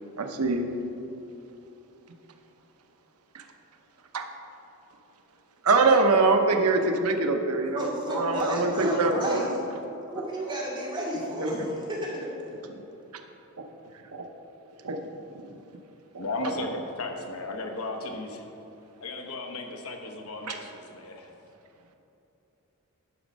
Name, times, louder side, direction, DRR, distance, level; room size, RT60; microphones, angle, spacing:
voice 1, 0.2-0.7 3.3-3.4 4.1-4.3 5.6-9.5 11.4-11.5 13.6-13.7 14.1-14.3 14.8-15.0 15.3-15.4 16.1-16.5 20.5-20.6, right 3 dB, 90° right, 5 dB, 0.8 m, -24 dB
voice 2, 7.7-9.6 10.1-12.2, equal, 20° right, -6 dB, 2.5 m, -31 dB
voice 3, 16.2-18.4 19.0-21.3, left 2 dB, 75° left, 3 dB, 1.1 m, -35 dB
11.0 x 6.2 x 5.3 m, 3.0 s
head